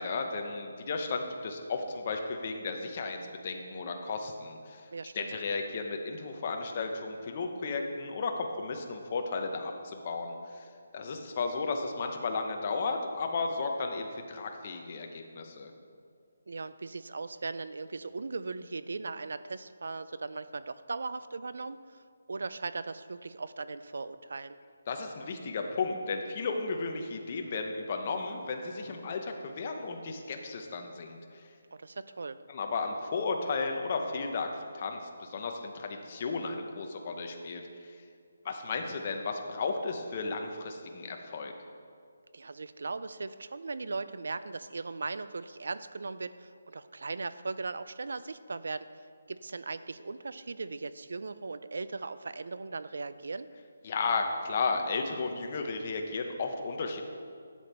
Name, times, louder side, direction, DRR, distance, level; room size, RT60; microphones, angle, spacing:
voice 1, 0.0-4.9 5.1-10.7 10.9-15.7 24.9-31.5 32.5-34.5 34.7-38.0 38.4-41.5 53.8-57.0, left 4 dB, 30° left, 3 dB, 0.9 m, -34 dB
voice 2, 4.9-5.3 16.5-22.0 22.3-24.6 31.7-32.4 42.3-48.9 49.3-53.5, right 3 dB, 70° right, 14 dB, 0.5 m, -38 dB
11.5 x 7.1 x 4.4 m, 2.2 s
hypercardioid pair, 170°, 0 cm